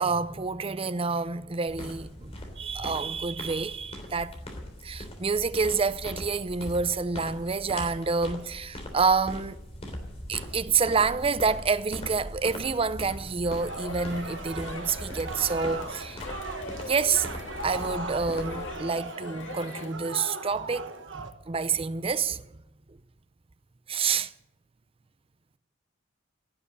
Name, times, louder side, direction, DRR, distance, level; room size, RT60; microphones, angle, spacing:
voice 1, 0.0-4.4 4.8-9.6 10.3-16.2 16.9-17.3 17.6-22.5 22.9-23.0 23.9-24.3, right 5 dB, 30° right, 0.6 m, -28 dB
sound 1, 1.7-18.8, left 1 dB, 35° left, 3.2 m, -41 dB
sound 2, 13.4-21.3, right 3 dB, 80° right, 1.2 m, -39 dB
Crowd, 13.7-19.9, left 3 dB, 75° left, 1.9 m, -42 dB
17.0 x 7.7 x 9.8 m
head